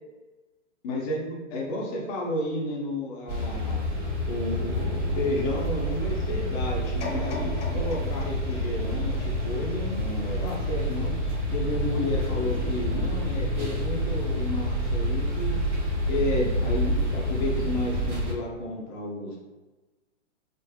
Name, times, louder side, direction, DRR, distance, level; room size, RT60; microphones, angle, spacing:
voice 1, 0.8-3.8 4.2-11.1 11.5-15.6 16.1-19.4, left 1 dB, 20° left, -2 dB, 0.4 m, -32 dB
sound 1, 3.3-18.3, equal, 35° right, 1.2 m, -28 dB
sound 2, 7.0-10.1 10.6-10.7, left 2 dB, 70° left, 0.8 m, -39 dB
3.4 x 2.5 x 2.2 m, 1.2 s
hypercardioid pair, 120°, 38 cm